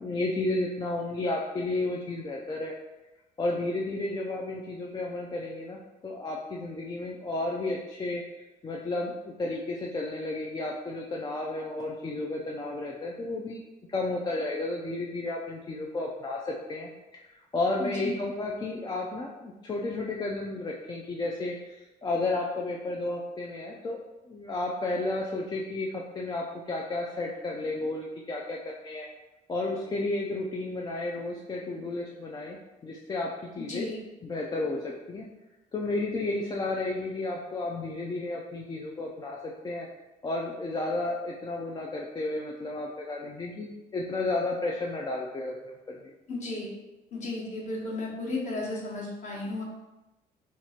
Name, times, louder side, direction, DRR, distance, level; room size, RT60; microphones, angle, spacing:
voice 1, 0.0-2.7 3.4-13.6 13.9-16.9 17.3-24.0 24.2-28.6 28.8-29.1 29.5-32.6 32.8-33.9 34.2-35.3 35.7-39.9 40.2-46.0, left 2 dB, 25° left, -2 dB, 0.4 m, -32 dB
voice 2, 17.8-18.2 33.7-34.0 46.3-46.7 47.1-49.6, left 2 dB, 45° left, -3 dB, 1.1 m, -34 dB
2.9 x 2.4 x 4.2 m, 1.0 s
cardioid pair, 110°, 17 cm